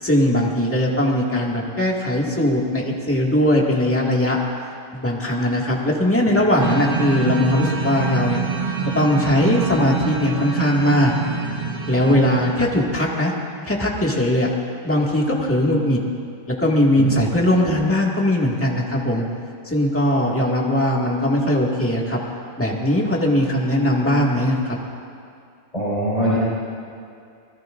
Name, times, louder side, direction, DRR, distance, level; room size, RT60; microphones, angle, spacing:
voice 1, 0.0-4.4 4.9-8.4 8.9-11.1 11.9-13.3 13.6-14.5 14.8-16.0 16.5-19.2 19.7-22.2 22.6-24.8, left 1 dB, 10° left, -3 dB, 2.0 m, -20 dB
sound 1, 6.6-13.0, right 5 dB, 65° right, 1.8 m, -26 dB
voice 2, 25.7-26.4, equal, 30° left, -10 dB, 5.1 m, -22 dB
26.0 x 19.5 x 2.6 m, 2.4 s
omnidirectional pair, 1.3 m